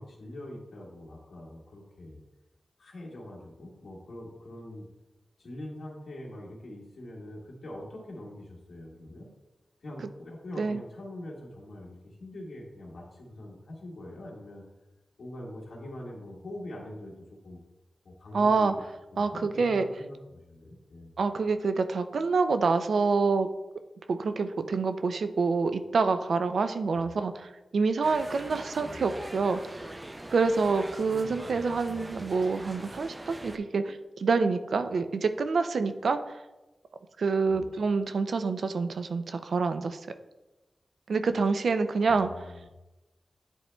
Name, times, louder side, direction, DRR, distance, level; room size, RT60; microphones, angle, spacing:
voice 1, 0.0-2.2 2.8-4.9 5.4-9.3 9.8-14.6 15.2-17.6 18.0-18.8 19.1-21.1 26.9-27.1 28.8-29.0 31.1-32.2 37.5-37.7 42.0-42.6, left 1 dB, 85° left, -3 dB, 1.7 m, -43 dB
voice 2, 18.3-18.7 19.2-19.8 21.2-23.5 24.1-29.6 30.3-36.4 37.2-40.1 41.1-42.5, right 4 dB, 85° right, 10 dB, 0.4 m, -27 dB
sound 1, 28.0-33.6, right 1 dB, 20° right, 0.4 m, -42 dB
9.8 x 4.2 x 2.2 m, 1.1 s
wide cardioid pair, 75°, 0 cm